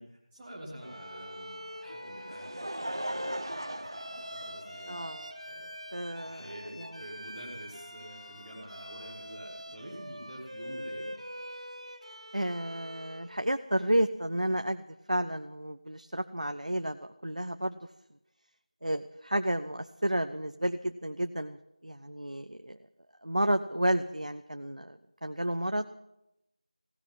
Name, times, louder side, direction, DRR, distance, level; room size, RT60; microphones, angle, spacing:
voice 1, 0.0-3.3 4.3-5.0 5.5-5.7 6.3-11.1, right 1 dB, 5° right, -10 dB, 1.0 m, -47 dB
sound 1, 0.8-9.2, left 2 dB, 35° left, 2.2 m, -52 dB
Bowed string instrument, 0.8-13.3, equal, 55° right, 2.2 m, -44 dB
Laughter, 1.9-5.1 5.9-6.0 7.5-7.6, right 1 dB, 40° right, 0.7 m, -39 dB
voice 2, 4.9-5.3 5.9-7.0 12.3-14.8 15.1-17.9 18.8-22.8 23.2-25.9, right 1 dB, 85° right, 9 dB, 0.7 m, -31 dB
16.5 x 11.0 x 7.3 m, 0.89 s
figure-of-eight pair, 175°, 4 cm